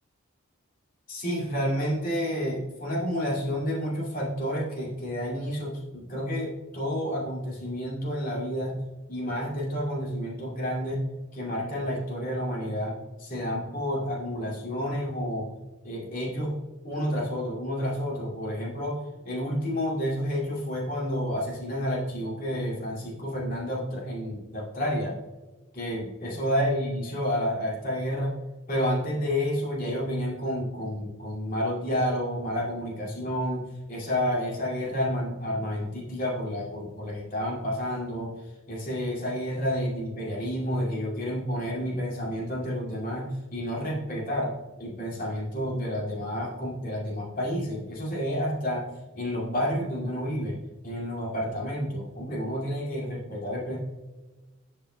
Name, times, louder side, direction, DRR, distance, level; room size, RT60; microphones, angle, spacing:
voice 1, 1.1-8.8 9.1-11.0 11.3-15.5 15.8-16.6 16.8-25.1 25.7-28.3 28.7-38.3 38.7-44.5 44.8-48.8 49.1-50.6 50.8-53.8, equal, 45° left, -4 dB, 2.3 m, -30 dB
11.5 x 5.5 x 2.2 m, 1.2 s
head